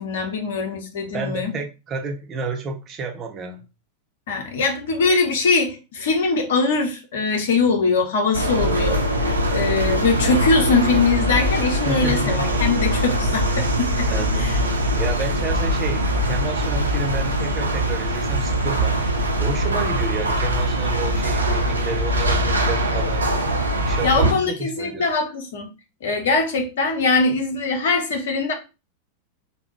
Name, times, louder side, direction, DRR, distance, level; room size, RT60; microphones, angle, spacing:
voice 1, 0.0-1.6 4.3-14.1 14.4-14.6 24.0-25.7 26.0-28.5, left 4 dB, 60° left, 0.9 m, -22 dB
voice 2, 1.1-3.6 11.9-12.5 14.1-14.4 15.0-23.3 23.9-25.0, right 3 dB, 30° right, 0.7 m, -30 dB
sound 1, 8.3-24.3, right 1 dB, 80° right, 0.6 m, -22 dB
3.4 x 2.3 x 3.2 m
figure-of-eight pair, 90°, 0 cm